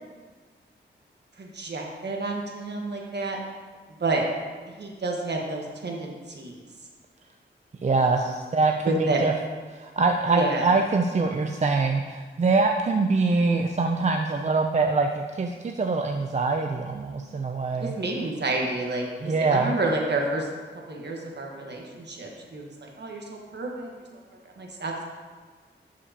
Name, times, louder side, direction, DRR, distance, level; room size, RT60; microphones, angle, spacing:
voice 1, 1.4-3.4 4.0-4.2 4.8-6.6 7.9-8.4 8.8-9.2 10.3-10.7 17.8-20.5 20.9-23.9 24.6-25.0, right 2 dB, 60° right, 0 dB, 1.4 m, -30 dB
voice 2, 7.8-9.3 9.7-17.9 19.2-19.7, right 3 dB, 35° right, 3 dB, 0.5 m, -24 dB
12.0 x 5.1 x 2.9 m, 1.5 s
cardioid pair, 65°, 20 cm